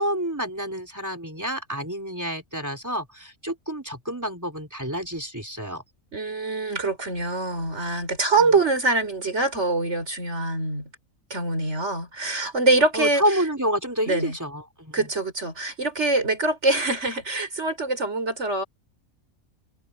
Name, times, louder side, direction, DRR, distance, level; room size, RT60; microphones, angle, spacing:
voice 1, 0.0-5.8 8.4-8.5 12.9-15.1, equal, 10° right, 3.6 m, -28 dB
voice 2, 6.1-10.9 11.3-13.4 14.1-14.4 14.9-18.6, right 2 dB, 55° right, 4.7 m, -24 dB
omnidirectional pair, 1.4 m